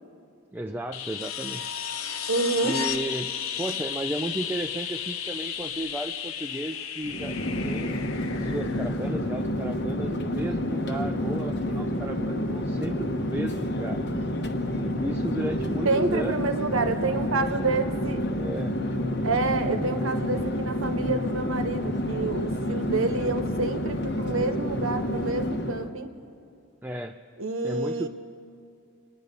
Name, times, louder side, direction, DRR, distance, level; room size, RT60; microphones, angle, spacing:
voice 1, 0.5-1.7 2.6-3.3 3.6-8.0 8.3-14.0 14.8-16.5 18.3-18.8 26.8-27.2 27.6-28.1, right 1 dB, 10° right, 4 dB, 0.3 m, -34 dB
sound 1, 0.9-9.6 11.9-12.0, left 8 dB, 75° left, 0.8 m, -34 dB
voice 2, 2.3-2.7 15.8-18.2 19.2-26.1 27.4-28.1, right 3 dB, 70° right, 8 dB, 1.0 m, -28 dB
Chatter / Fixed-wing aircraft airplane, 7.0-25.9, left 1 dB, 50° left, 1.1 m, -29 dB
26.0 x 10.0 x 5.3 m, 2.5 s
head